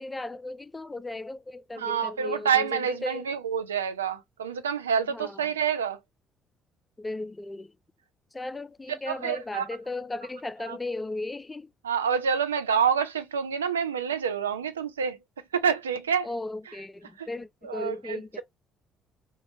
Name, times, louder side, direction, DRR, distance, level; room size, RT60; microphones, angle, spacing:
voice 1, 0.0-3.3 5.1-5.4 7.0-7.7 8.3-11.7 16.2-18.4, left 2 dB, 20° left, 0.3 m, -36 dB
voice 2, 1.8-6.0 9.1-9.7 10.6-10.8 11.8-15.2 15.5-16.3 17.2-17.3 17.6-18.4, right 7 dB, 85° right, 0.3 m, -27 dB
3.0 x 2.2 x 2.6 m
figure-of-eight pair, 50°, 0 cm